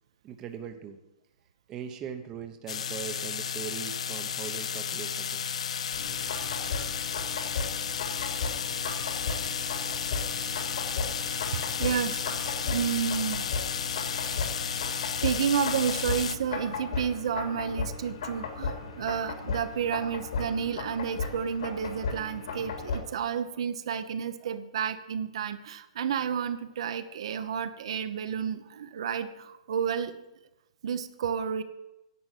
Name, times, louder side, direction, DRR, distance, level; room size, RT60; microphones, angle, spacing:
voice 1, 0.2-1.0 1.7-5.4, right 7 dB, 20° right, 6 dB, 0.9 m, -40 dB
sound 1, 2.7-16.3, left 7 dB, 85° left, 0.8 m, -33 dB
sound 2, 5.9-23.0, left 4 dB, 70° left, 3.5 m, -36 dB
voice 2, 10.3-13.5 15.2-30.1 30.8-31.6, right 7 dB, 60° right, 10 dB, 1.0 m, -31 dB
11.0 x 7.7 x 9.2 m, 0.92 s
hypercardioid pair, 170°, 3 cm